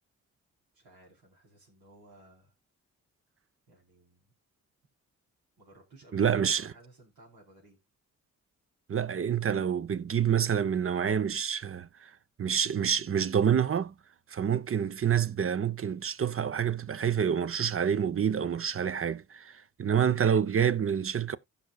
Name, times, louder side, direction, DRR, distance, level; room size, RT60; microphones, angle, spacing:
voice 1, 0.7-2.5 3.7-4.3 5.6-7.8, right 1 dB, 85° right, 4.2 m, -56 dB
voice 2, 6.1-6.7 8.9-12.1 12.4-13.9 14.3-21.4, right 8 dB, 40° right, 0.7 m, -27 dB
16.0 x 5.6 x 2.3 m
supercardioid pair, 50°, 35 cm